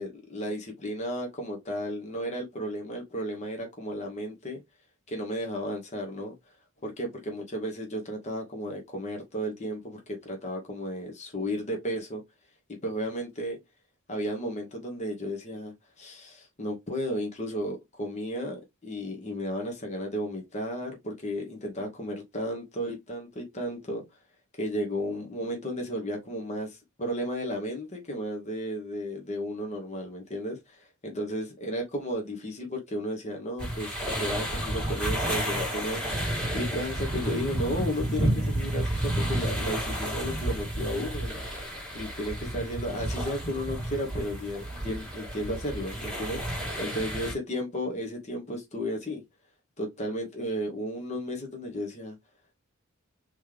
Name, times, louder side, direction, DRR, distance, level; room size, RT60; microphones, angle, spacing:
voice 1, 0.0-4.6 5.1-6.3 6.8-12.2 12.8-13.6 14.1-24.0 24.6-36.2 36.5-41.4 41.9-49.2 49.8-52.2, equal, 30° left, 1.1 m, -34 dB
sound 1, 33.6-47.3, right 1 dB, 5° left, 1.9 m, -31 dB
3.7 x 3.1 x 3.2 m
head